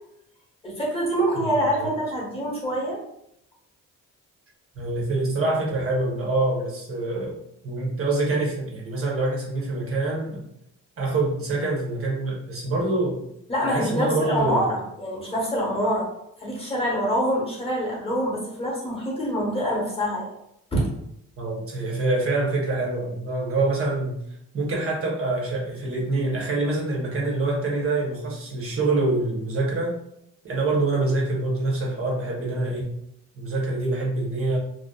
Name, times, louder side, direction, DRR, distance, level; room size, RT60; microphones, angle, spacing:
voice 1, 0.6-3.0 13.5-16.1 16.4-20.3 20.7-20.9, equal, 15° left, -4 dB, 0.9 m, -25 dB
voice 2, 1.3-1.9 4.8-7.4 7.6-10.4 11.0-13.2 13.6-14.7 21.4-24.1 24.5-29.9 30.4-32.9 33.3-34.6, right 2 dB, 40° right, -3 dB, 0.8 m, -25 dB
2.6 x 2.2 x 2.2 m, 0.77 s
cardioid pair, 135°, 33 cm